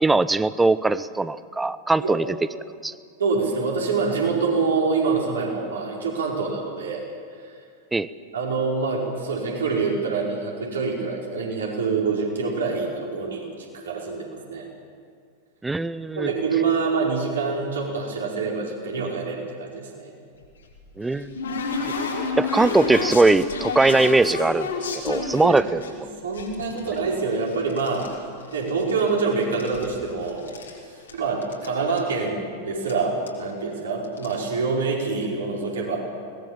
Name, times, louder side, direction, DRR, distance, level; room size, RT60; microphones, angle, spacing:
voice 1, 0.0-2.2 2.8-2.9 7.9-8.1 15.6-16.3 21.0-21.3 22.4-24.7 25.0-26.1, right 3 dB, 10° right, 17 dB, 0.7 m, -20 dB
voice 2, 3.2-7.0 7.4-7.5 8.3-14.7 16.1-20.1 25.4-28.1 28.5-30.5 31.1-36.0, right 4 dB, 65° right, -2 dB, 5.0 m, -26 dB
sound 1, 20.4-25.9 26.3-28.1 28.4-29.2 29.4-30.8 31.1-31.2 31.4-31.7 32.0-32.1 32.9-33.0 33.3-33.5 34.0-34.3, left 4 dB, 70° left, 3.7 m, -30 dB
21.5 x 19.5 x 7.3 m, 2.1 s
figure-of-eight pair, 90°, 0 cm